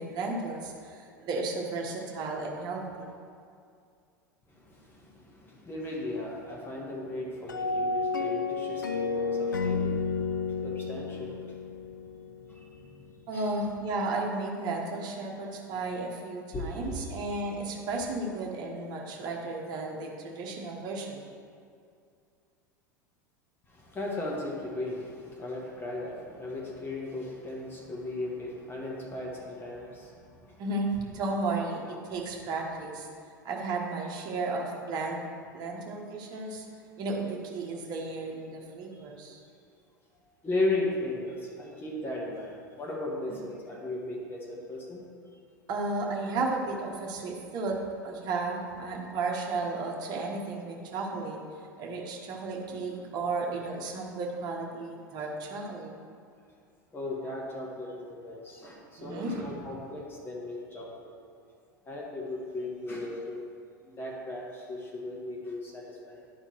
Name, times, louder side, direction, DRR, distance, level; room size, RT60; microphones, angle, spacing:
voice 1, 0.0-3.1 13.3-21.2 30.6-33.1 33.4-35.2 35.5-36.6 37.0-39.4 45.7-47.8 48.0-51.4 51.8-55.9 59.0-59.6, right 3 dB, 40° right, 0 dB, 1.3 m, -33 dB
voice 2, 4.5-13.5 16.5-17.0 23.7-30.6 38.9-39.1 40.4-45.3 51.1-51.3 52.7-53.1 56.9-61.1 61.8-63.4 63.8-66.2, left 2 dB, 20° left, -3 dB, 1.5 m, -37 dB
sound 1, 7.5-12.7, left 4 dB, 75° left, 0.5 m, -31 dB
11.0 x 4.3 x 4.6 m, 2.3 s
figure-of-eight pair, 80°, 11 cm